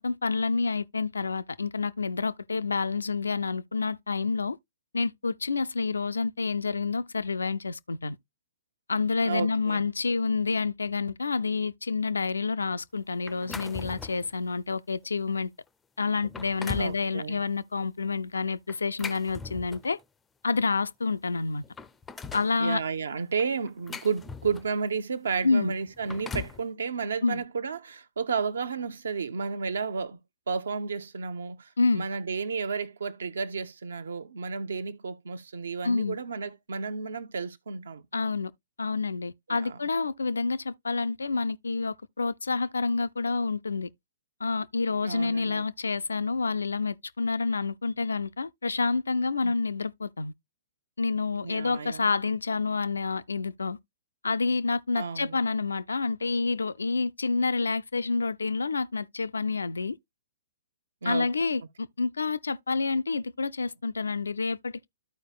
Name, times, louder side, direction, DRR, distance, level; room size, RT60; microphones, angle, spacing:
voice 1, 0.0-4.6 4.9-8.2 8.9-15.5 16.0-20.0 20.4-21.6 22.3-22.8 25.4-25.7 27.2-27.4 31.8-32.1 35.8-36.2 38.1-38.5 38.8-43.9 44.4-50.3 51.0-53.8 54.2-60.0 61.0-64.9, left 4 dB, 70° left, 0.4 m, -28 dB
voice 2, 9.2-9.8 16.8-17.4 22.6-30.2 30.5-38.0 39.5-39.8 45.0-45.7 49.4-49.5 51.4-52.1 54.9-55.4 61.0-61.3, right 5 dB, 65° right, 0.7 m, -32 dB
sound 1, 13.3-14.3 14.9-15.0 15.7-15.8 16.2-17.0 18.7-20.0 21.1-21.2 21.5-22.5 23.4-24.8 25.8-26.6, left 5 dB, 10° left, 0.4 m, -39 dB
13.5 x 4.6 x 2.3 m
figure-of-eight pair, 115°, 0 cm